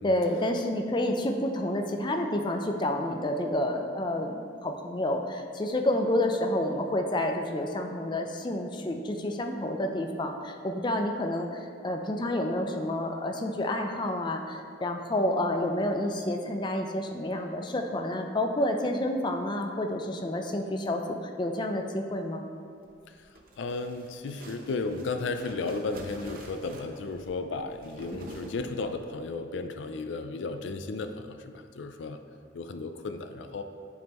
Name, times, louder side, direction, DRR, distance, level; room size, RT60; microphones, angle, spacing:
voice 1, 0.0-22.4, left 1 dB, 25° left, 3 dB, 0.5 m, -29 dB
sound 1, 23.0-29.1, right 1 dB, 50° right, 0.8 m, -47 dB
voice 2, 23.6-32.2 32.5-33.6, left 3 dB, 80° left, 8 dB, 0.4 m, -34 dB
10.5 x 5.4 x 3.0 m, 2.3 s
head